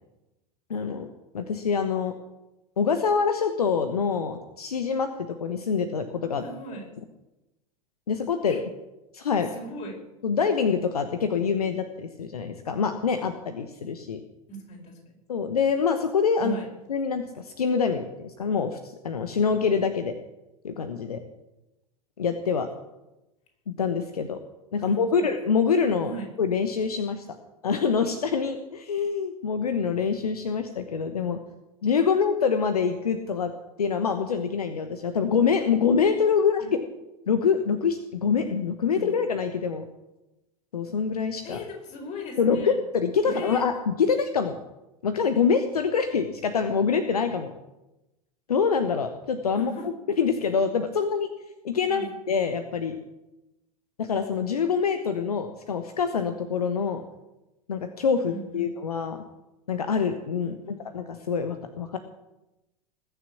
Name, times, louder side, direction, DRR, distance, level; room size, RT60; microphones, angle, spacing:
voice 1, 0.7-1.1 1.3-2.1 2.8-5.1 5.4-6.4 8.1-8.6 9.1-9.5 10.2-14.2 15.3-16.6 16.9-20.1 20.6-21.2 22.2-22.7 23.7-24.4 24.7-27.2 27.6-31.4 31.8-33.5 33.8-36.6 37.3-39.8 40.7-41.6 42.4-44.6 45.0-47.5 48.5-49.7 50.2-51.3 51.6-53.0 54.0-57.0 57.7-59.2 59.7-60.6 60.9-62.0, left 6 dB, 75° left, 8 dB, 1.1 m, -25 dB
voice 2, 6.4-6.9 8.4-8.6 9.5-10.0 14.5-15.2 16.4-16.7 24.8-25.3 26.0-26.3 36.6-36.7 38.9-39.1 41.4-42.8 43.2-43.7 49.5-49.9 51.9-52.1 58.3-58.7 60.4-61.0, equal, 35° left, 2 dB, 5.1 m, -38 dB
20.0 x 7.2 x 8.6 m, 0.98 s
figure-of-eight pair, 85°, 20 cm